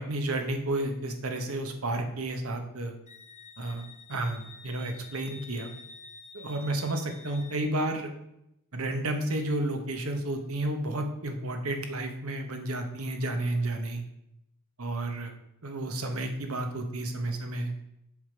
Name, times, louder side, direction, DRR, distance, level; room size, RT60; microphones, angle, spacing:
voice 1, 0.0-2.9 3.6-5.7 6.3-8.1 8.7-14.0 14.8-15.3 15.6-17.9, right 1 dB, 75° right, 5 dB, 1.2 m, -31 dB
Wind instrument woodwind instrument, 3.1-7.6, left 4 dB, 30° left, 0.6 m, -49 dB
7.1 x 5.1 x 5.1 m, 0.82 s
head